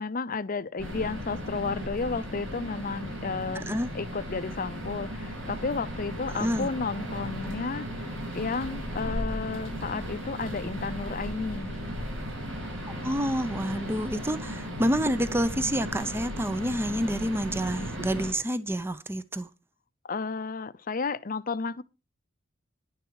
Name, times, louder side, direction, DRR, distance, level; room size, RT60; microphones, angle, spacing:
voice 1, 0.0-3.7 3.9-11.8 20.0-21.8, left 4 dB, 45° left, 0.7 m, -32 dB
sound 1, 0.8-18.3, equal, 75° right, 6.3 m, -36 dB
voice 2, 3.5-3.9 6.3-6.7 12.9-19.5, equal, 10° right, 0.7 m, -28 dB
10.5 x 10.5 x 4.8 m
head